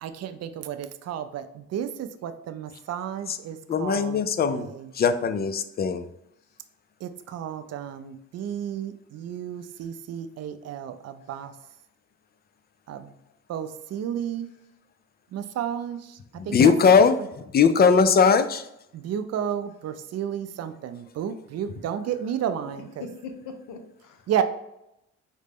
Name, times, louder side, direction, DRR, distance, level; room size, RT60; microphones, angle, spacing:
voice 1, 0.0-4.2 4.5-4.9 7.0-11.6 12.9-13.1 13.5-14.5 15.3-17.1 18.9-22.9 24.3-24.4, right 9 dB, 55° right, 10 dB, 0.4 m, -32 dB
voice 2, 3.7-6.1 16.4-17.2 17.5-18.7, left 5 dB, 35° left, 11 dB, 0.4 m, -20 dB
voice 3, 23.0-24.3, left 4 dB, 90° left, 7 dB, 0.7 m, -42 dB
4.9 x 2.1 x 3.4 m, 0.84 s
cardioid pair, 90°, 30 cm